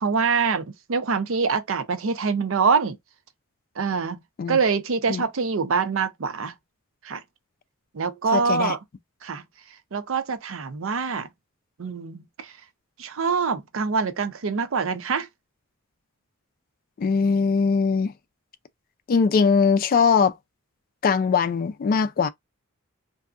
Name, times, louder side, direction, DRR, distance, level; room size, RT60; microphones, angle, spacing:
voice 1, 0.0-3.0 3.8-4.2 4.5-6.5 7.0-7.2 7.9-8.8 9.2-9.4 9.9-11.3 11.8-12.5 13.0-15.3, right 5 dB, 70° right, 0.6 m, -25 dB
voice 2, 8.3-8.7 17.0-18.1 19.1-20.3 21.0-22.3, left 5 dB, 45° left, 0.3 m, -21 dB
2.6 x 2.4 x 2.4 m
head